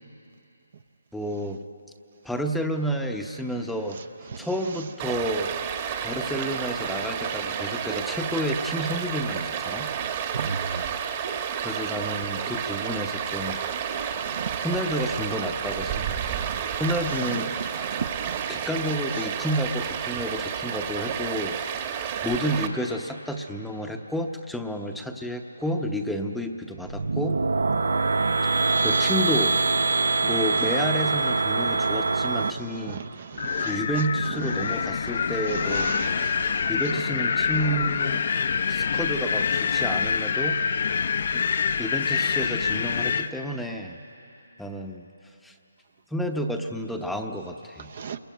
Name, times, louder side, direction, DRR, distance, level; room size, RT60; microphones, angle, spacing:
voice 1, 1.1-1.6 2.2-4.0 4.4-5.5 6.0-9.9 11.6-13.6 14.6-17.5 17.7-18.0 18.5-21.6 21.9-27.4 28.5-29.6 30.2-33.0 33.6-36.0 36.7-38.2 38.7-40.6 41.3-41.5 41.8-44.0 44.6-45.1 45.4-45.5 46.1-47.9, equal, ahead, 4 dB, 0.9 m, -30 dB
Stream, 5.0-22.7, right 8 dB, 30° right, 1.4 m, -31 dB
voice 2, 18.0-18.5 28.7-28.8 32.9-33.0 33.4-33.7 36.0-36.6 48.0-48.2, right 6 dB, 45° right, 10 dB, 0.8 m, -34 dB
sound 1, 26.8-32.5, right 3 dB, 85° right, 1.0 m, -24 dB
Wind, 33.4-43.3, left 6 dB, 50° left, 0.7 m, -26 dB
27.5 x 22.0 x 9.3 m, 3.0 s
hypercardioid pair, 165°, 0 cm